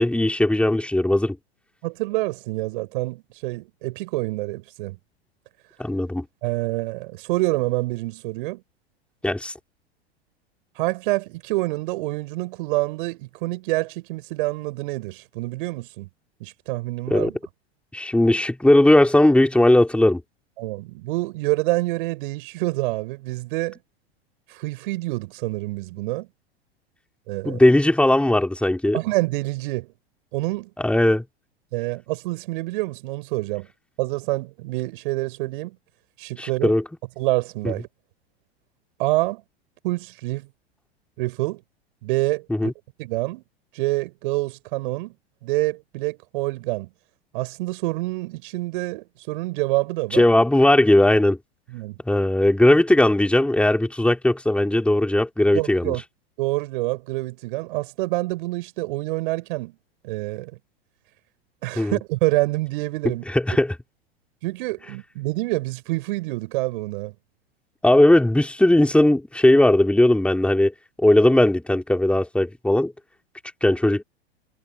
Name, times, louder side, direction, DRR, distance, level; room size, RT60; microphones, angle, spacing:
voice 1, 0.0-1.4 5.8-6.2 9.2-9.5 17.1-17.3 17.9-20.2 27.4-29.0 30.8-31.2 36.4-36.8 42.5-42.7 50.1-51.4 52.1-55.9 61.8-61.9 63.3-63.7 67.8-70.7 71.0-72.9 73.6-74.0, left 1 dB, 5° left, 4.9 m, -18 dB
voice 2, 1.8-5.0 6.4-8.6 10.8-16.1 16.4-17.4 20.6-23.8 24.5-26.3 27.3-27.6 28.9-29.9 30.3-30.7 31.7-33.7 34.0-35.8 36.2-36.8 37.2-37.9 39.0-39.4 39.8-40.5 41.2-41.6 42.0-42.7 43.0-43.4 43.7-45.2 45.4-46.9 47.3-50.3 51.7-52.0 55.5-56.0 56.4-59.8 60.0-60.5 61.6-63.2 64.4-67.1, right 21 dB, 50° right, 7.5 m, -27 dB
figure-of-eight pair, 90°, 32 cm